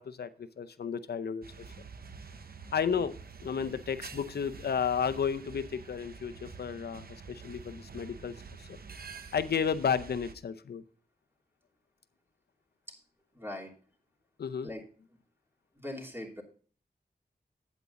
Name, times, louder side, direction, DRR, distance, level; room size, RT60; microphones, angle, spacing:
voice 1, 0.0-1.4 2.7-8.3 8.6-8.7 9.3-10.8 14.4-14.7, left 7 dB, 85° left, 12 dB, 0.6 m, -32 dB
sound 1, 1.4-10.3, right 5 dB, 70° right, 0.9 m, -48 dB
voice 2, 13.3-13.7 14.6-14.8 15.7-16.4, left 1 dB, 15° right, 0 dB, 3.0 m, -40 dB
8.4 x 8.3 x 4.1 m, 0.42 s
cardioid pair, 60°, 16 cm